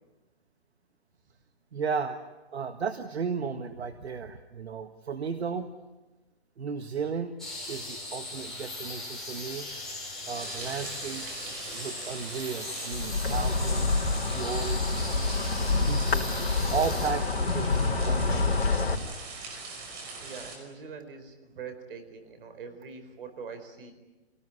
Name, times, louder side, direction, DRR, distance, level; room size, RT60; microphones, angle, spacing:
voice 1, 1.7-2.2 2.5-5.7 6.6-7.4 7.7-9.7 10.3-14.0 14.3-14.8 15.5-16.4 16.7-17.2 17.5-18.7, right 5 dB, 80° right, 8 dB, 1.6 m, -34 dB
sound 1, 7.4-17.1, left 2 dB, ahead, 7.3 m, -39 dB
sound 2, 10.3-20.6, right 3 dB, 35° right, 5.7 m, -42 dB
Insect, 12.9-19.0, left 3 dB, 75° left, 3.8 m, -27 dB
voice 2, 20.2-23.9, right 5 dB, 60° right, 8 dB, 4.7 m, -43 dB
26.0 x 18.5 x 9.8 m, 1.1 s
hypercardioid pair, 140°, 32 cm